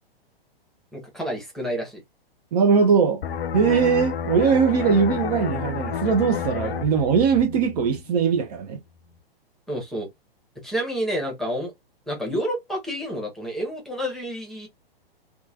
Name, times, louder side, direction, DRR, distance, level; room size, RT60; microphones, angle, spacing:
voice 1, 0.9-2.0 9.7-10.1 10.6-11.7 12.1-14.7, equal, ahead, 1.0 m, -29 dB
voice 2, 2.5-3.2 3.5-8.8, right 6 dB, 45° right, 0.6 m, -20 dB
sound 1, 3.2-8.6 8.9-9.2, left 7 dB, 75° left, 0.5 m, -31 dB
3.0 x 2.3 x 2.4 m
hypercardioid pair, 120°, 30 cm